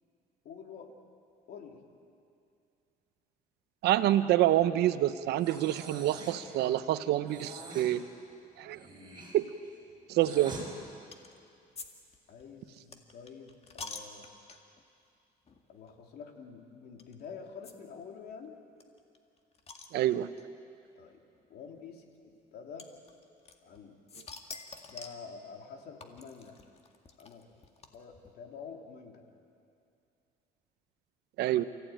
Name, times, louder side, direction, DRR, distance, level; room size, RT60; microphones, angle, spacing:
voice 1, 0.4-1.0 1.5-1.8 12.3-14.2 15.7-18.6 20.9-21.2 21.5-22.9 23.6-24.0 24.8-26.6 27.2-27.5 27.9-29.2, left 6 dB, 65° left, 2 dB, 3.0 m, -47 dB
voice 2, 3.8-8.0 8.6-8.8 9.3-9.5 10.1-10.6 19.9-20.3 31.4-31.6, right 13 dB, 80° right, 12 dB, 0.9 m, -27 dB
Breathing, 5.4-6.5 7.3-7.9 8.7-10.7, right 2 dB, 25° right, 6.0 m, -45 dB
sound 1, 11.1-11.4 11.8-11.9 12.1-14.8 15.5-15.6 15.9-16.0 17.0-17.1 17.6-17.7 18.0-18.1 18.3-18.4 18.8-20.4 21.3-21.4 22.8-23.8 24.1-25.3 26.0-28.3, left 4 dB, 35° left, 2.0 m, -47 dB
29.0 x 15.5 x 9.2 m, 2.6 s
cardioid pair, 110°, 17 cm